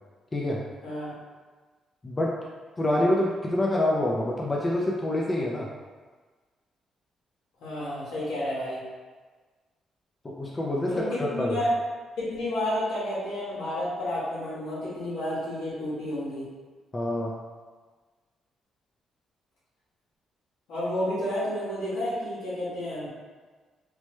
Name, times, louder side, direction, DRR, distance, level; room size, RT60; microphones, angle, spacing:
voice 1, 2.0-2.4 2.8-5.7 10.2-11.6 16.9-17.3, left 1 dB, 25° left, -3 dB, 0.4 m, -26 dB
voice 2, 7.6-8.8 10.8-11.0 11.3-11.7 12.2-16.5 20.7-23.1, left 1 dB, 85° left, -10 dB, 1.5 m, -31 dB
3.2 x 2.1 x 2.9 m, 1.4 s
cardioid pair, 85°, 0 cm